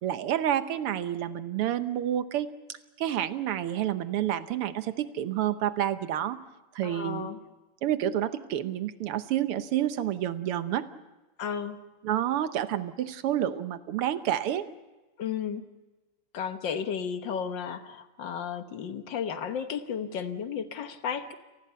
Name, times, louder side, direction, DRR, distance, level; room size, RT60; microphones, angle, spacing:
voice 1, 0.0-2.5 3.0-6.4 6.8-7.3 7.8-10.9 12.0-14.7, right 11 dB, 85° right, 11 dB, 1.9 m, -29 dB
voice 2, 6.8-7.4 11.4-11.8 15.2-15.7 16.3-21.3, left 7 dB, 60° left, 9 dB, 1.8 m, -33 dB
29.0 x 19.5 x 5.6 m, 1.1 s
omnidirectional pair, 2.4 m